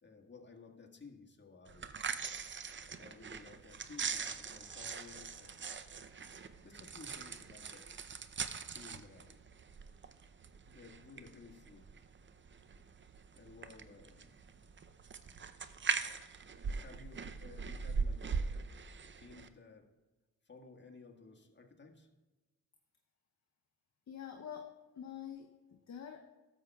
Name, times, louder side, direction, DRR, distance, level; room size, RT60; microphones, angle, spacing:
voice 1, 0.0-2.0 3.0-5.7 6.6-8.0 8.7-9.5 10.7-11.9 13.3-14.4 16.7-18.8 19.2-19.9 20.4-22.1, left 4 dB, 30° left, 1 dB, 1.6 m, -56 dB
sound 1, 1.7-19.5, right 5 dB, 30° right, 0.6 m, -41 dB
voice 2, 24.1-26.2, left 8 dB, 45° left, 5 dB, 0.7 m, -47 dB
12.5 x 7.3 x 2.3 m, 1.2 s
supercardioid pair, 50°, 37 cm